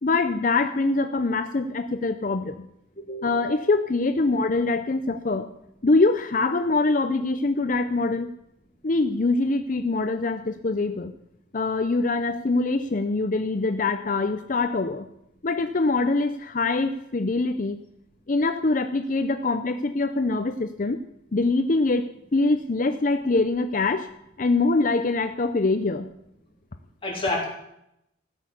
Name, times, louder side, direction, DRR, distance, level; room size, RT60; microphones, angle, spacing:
voice 1, 0.0-2.6 3.2-5.5 5.8-8.3 8.8-11.1 11.5-15.1 15.4-17.8 18.3-21.0 21.3-24.1 24.4-26.1, left 3 dB, 45° left, 8 dB, 0.6 m, -24 dB
voice 2, 3.1-3.6 27.0-27.4, left 2 dB, 30° left, -3 dB, 3.2 m, -29 dB
15.5 x 6.4 x 8.3 m, 0.82 s
head